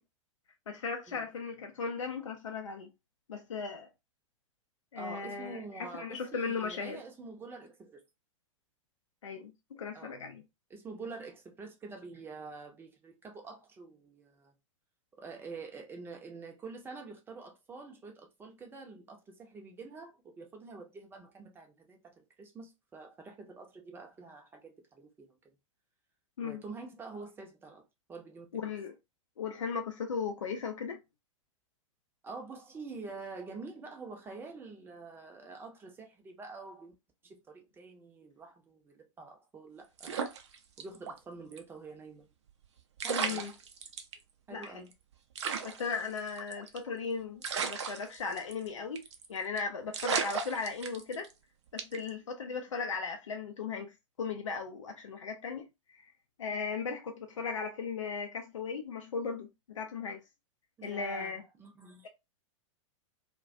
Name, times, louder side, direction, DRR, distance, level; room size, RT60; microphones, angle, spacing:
voice 1, 0.7-2.9 3.3-3.9 4.9-7.0 9.2-10.4 26.4-26.6 28.5-28.9 29.4-31.0 43.1-43.5 44.5-44.8 45.6-51.3 51.7-56.1 56.4-60.2 60.8-61.4, left 5 dB, 70° left, 0.5 m, -37 dB
voice 2, 5.0-8.0 9.9-10.2 10.7-14.5 15.2-25.4 26.4-28.6 32.2-36.9 37.2-40.2 40.8-42.3 43.0-43.5 44.5-44.9 60.8-62.1, right 4 dB, 15° right, 0.6 m, -47 dB
sound 1, 40.0-41.2 41.5-41.6 42.6-42.7 43.0-44.1 44.6-44.7 44.9-45.0 45.4-46.9 47.4-48.7 49.0-49.3 49.6-49.7 49.9-51.3 51.8-52.1, right 6 dB, 60° right, 0.5 m, -35 dB
2.3 x 2.2 x 2.5 m
figure-of-eight pair, 100°, 17 cm